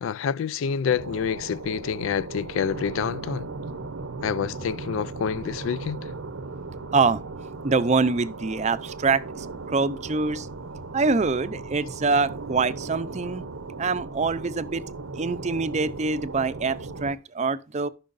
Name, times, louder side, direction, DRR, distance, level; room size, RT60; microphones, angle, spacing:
voice 1, 0.0-3.5 4.2-6.1, left 7 dB, 70° left, 0.3 m, -27 dB
sound 1, 0.9-17.1, right 3 dB, 85° right, 0.8 m, -37 dB
voice 2, 7.6-10.5 10.9-13.4 13.8-14.8 15.2-17.9, right 4 dB, 35° right, 0.5 m, -25 dB
14.0 x 6.1 x 2.5 m
head